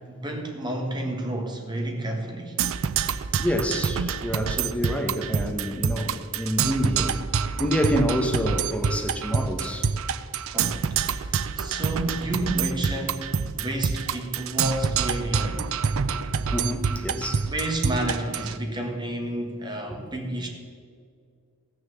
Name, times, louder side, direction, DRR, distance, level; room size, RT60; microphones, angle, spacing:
voice 1, 0.1-2.6 10.5-15.7 17.1-20.5, right 1 dB, 20° right, 2 dB, 1.6 m, -31 dB
Percussion, 2.6-18.6, right 6 dB, 65° right, 0.5 m, -27 dB
voice 2, 3.4-9.9 16.0-16.2 16.5-17.5 20.0-20.1, equal, 5° left, 3 dB, 1.1 m, -28 dB
15.0 x 6.7 x 7.2 m, 2.1 s
head